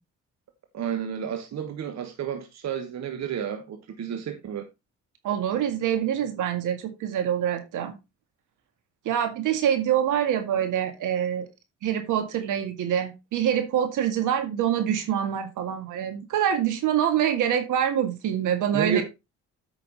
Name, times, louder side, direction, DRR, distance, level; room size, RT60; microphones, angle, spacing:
voice 1, 0.7-4.6 18.7-19.0, right 8 dB, 60° right, 1.5 m, -31 dB
voice 2, 5.2-7.9 9.1-11.5 11.8-19.0, right 9 dB, 85° right, 2.1 m, -25 dB
8.9 x 6.0 x 4.0 m
cardioid pair, 90°, 30 cm